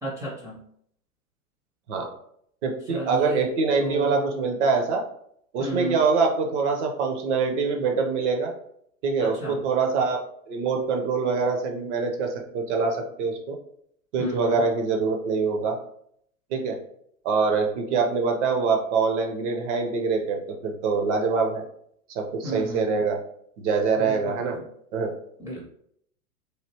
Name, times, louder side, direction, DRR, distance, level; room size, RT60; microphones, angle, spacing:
voice 1, 0.0-0.6 2.9-3.4 3.8-4.1 5.6-6.0 9.2-9.6 14.2-14.6 22.4-23.0 24.0-24.6 25.4-25.6, right 1 dB, 10° right, -5 dB, 0.6 m, -33 dB
voice 2, 2.6-5.0 5.5-8.5 9.0-10.2 10.5-13.6 14.1-15.8 16.5-16.8 17.2-21.6 22.1-23.2 23.6-24.5 24.9-25.1, right 4 dB, 50° right, 3 dB, 0.8 m, -24 dB
3.2 x 2.6 x 2.8 m, 0.68 s
hypercardioid pair, 110°, 45 cm